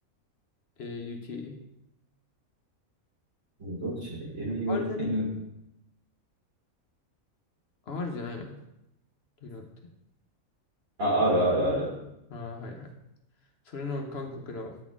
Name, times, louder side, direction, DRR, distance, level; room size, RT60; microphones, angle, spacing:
voice 1, 0.8-1.6 4.7-5.1 7.9-8.6 9.4-9.6 12.3-12.9 13.7-14.7, left 3 dB, 50° left, 3 dB, 1.0 m, -36 dB
voice 2, 3.6-5.3 11.0-11.9, right 1 dB, 70° right, -8 dB, 3.6 m, -27 dB
9.8 x 4.1 x 3.6 m, 0.85 s
omnidirectional pair, 1.5 m